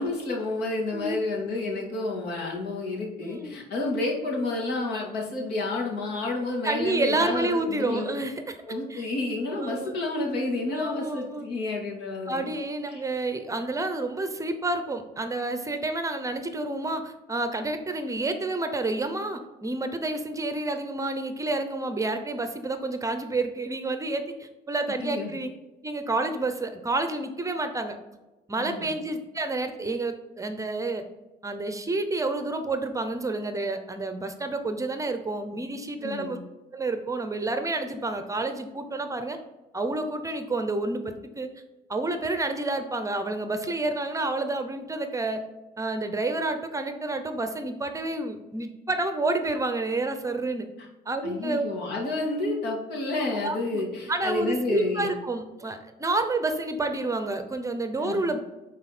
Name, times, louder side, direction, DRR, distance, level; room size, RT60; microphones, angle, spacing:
voice 1, 0.0-8.1 8.7-12.5 12.9-13.0 25.0-25.3 28.6-29.0 36.0-36.3 51.2-55.1 58.0-58.3, left 2 dB, 75° left, -1 dB, 2.5 m, -30 dB
voice 2, 3.2-3.6 6.6-8.6 8.9-9.1 9.6-9.9 10.7-11.5 12.3-25.5 25.8-28.0 28.5-31.0 31.4-36.4 36.7-39.4 39.7-41.5 41.9-45.4 45.8-50.7 51.1-51.7 53.4-58.6, right 2 dB, 20° right, 8 dB, 0.8 m, -29 dB
9.3 x 4.1 x 4.3 m, 1.1 s
cardioid pair, 110°, 17 cm